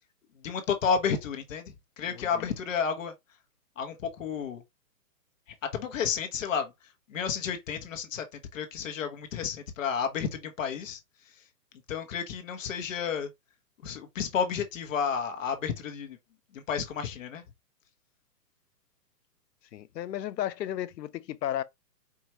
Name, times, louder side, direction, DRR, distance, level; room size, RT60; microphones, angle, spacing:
voice 1, 0.4-3.1 3.8-4.6 5.6-6.7 7.1-11.0 11.9-13.3 13.8-16.2 16.5-17.4, left 6 dB, 50° left, 0.9 m, -31 dB
voice 2, 2.1-2.5 19.7-21.6, left 12 dB, 85° left, 0.7 m, -34 dB
4.6 x 2.4 x 3.0 m
hypercardioid pair, 155°, 49 cm